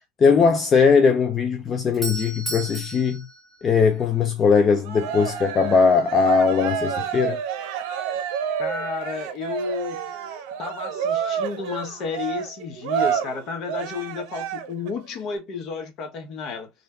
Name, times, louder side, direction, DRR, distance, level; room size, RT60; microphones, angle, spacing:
voice 1, 0.2-3.3 3.6-7.4, left 5 dB, 25° left, 0.5 m, -19 dB
Doorbell, 1.6-4.4, right 2 dB, ahead, 1.1 m, -35 dB
Cheering, 4.8-14.9, right 8 dB, 65° right, 0.8 m, -29 dB
voice 2, 8.6-10.2 10.6-16.7, left 5 dB, 45° left, 1.0 m, -32 dB
3.3 x 2.5 x 3.2 m
supercardioid pair, 145°, 0 cm